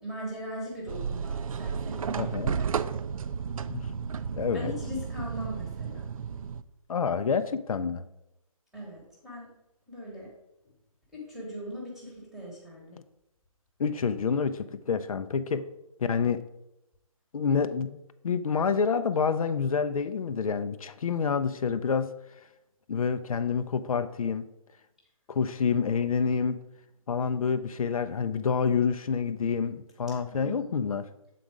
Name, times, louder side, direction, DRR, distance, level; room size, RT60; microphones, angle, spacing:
voice 1, 0.0-2.7 4.5-6.1 8.7-9.5 9.9-10.3 11.1-12.9 25.7-25.9 30.1-30.7, equal, ahead, -4 dB, 1.1 m, -40 dB
sound 1, 0.9-6.6, right 6 dB, 70° right, 0.4 m, -33 dB
voice 2, 2.2-2.6 3.7-3.9 4.3-4.7 6.9-8.0 12.9-13.0 13.8-15.6 16.0-16.4 17.3-22.1 22.9-24.4 25.3-26.6 27.1-31.0, left 6 dB, 70° left, 11 dB, 0.5 m, -28 dB
7.6 x 3.9 x 4.8 m, 0.90 s
hypercardioid pair, 165°, 19 cm